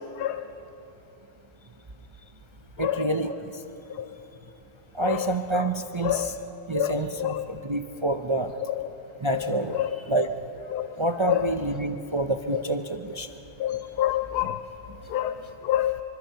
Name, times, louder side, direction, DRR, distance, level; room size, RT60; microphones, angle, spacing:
voice 1, 2.8-3.6 4.9-6.4 6.7-8.5 9.2-10.3 11.0-13.3 15.5-15.6, right 2 dB, 50° right, 6 dB, 0.3 m, -28 dB
voice 2, 6.8-7.4 9.7-9.9 10.7-10.9 11.3-11.4 13.6-14.6 15.1-15.3 15.6-15.9, left 12 dB, 80° left, 10 dB, 1.2 m, -26 dB
24.5 x 24.0 x 5.7 m, 3.0 s
omnidirectional pair, 1.7 m